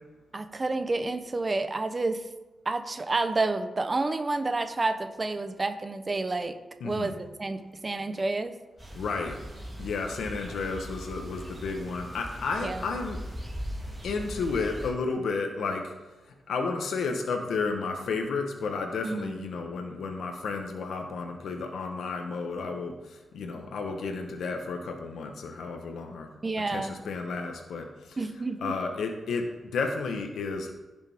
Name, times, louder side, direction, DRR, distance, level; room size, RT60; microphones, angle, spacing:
voice 1, 0.3-2.2 2.7-6.6 6.8-8.5 12.6-12.9 19.0-19.4 26.4-27.0 28.2-28.7, right 3 dB, 25° right, 9 dB, 0.8 m, -29 dB
voice 2, 6.8-7.1 8.9-9.4 9.8-13.2 14.0-15.9 16.5-23.0 23.3-26.3 26.7-28.2 28.6-30.7, left 4 dB, 85° left, 4 dB, 1.2 m, -32 dB
sound 1, 8.8-14.9, equal, 10° right, 3.4 m, -40 dB
15.5 x 6.8 x 3.6 m, 1.2 s
wide cardioid pair, 150°, 0 cm